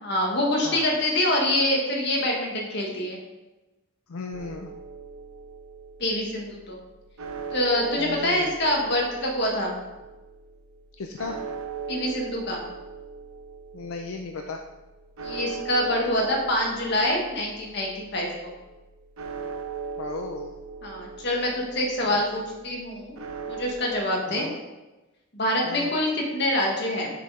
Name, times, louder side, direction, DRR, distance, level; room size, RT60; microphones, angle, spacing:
voice 1, 0.0-3.2 6.0-6.8 7.5-9.8 11.9-12.6 15.2-18.5 20.8-23.2 23.5-24.5 25.3-27.1, left 1 dB, 55° left, -1 dB, 1.6 m, -25 dB
voice 2, 4.1-4.7 8.0-8.5 11.0-11.4 13.7-14.6 20.0-20.5 22.1-22.2 24.3-24.6 25.6-25.9, left 4 dB, 80° left, 3 dB, 0.5 m, -35 dB
sound 1, 4.3-23.8, right 5 dB, 85° right, 0.8 m, -39 dB
6.8 x 5.5 x 3.7 m, 1.1 s
head